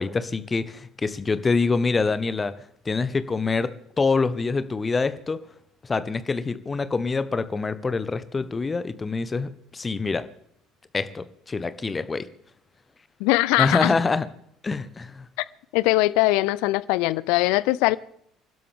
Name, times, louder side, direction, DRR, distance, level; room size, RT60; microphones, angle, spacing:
voice 1, 0.0-2.5 2.8-5.4 5.8-10.2 10.9-12.3 13.6-14.3 14.6-15.3, left 4 dB, 25° left, 1.3 m, -25 dB
voice 2, 13.2-14.0 15.7-18.0, left 19 dB, 60° left, 0.5 m, -21 dB
28.5 x 12.5 x 3.6 m
figure-of-eight pair, 55°, 0 cm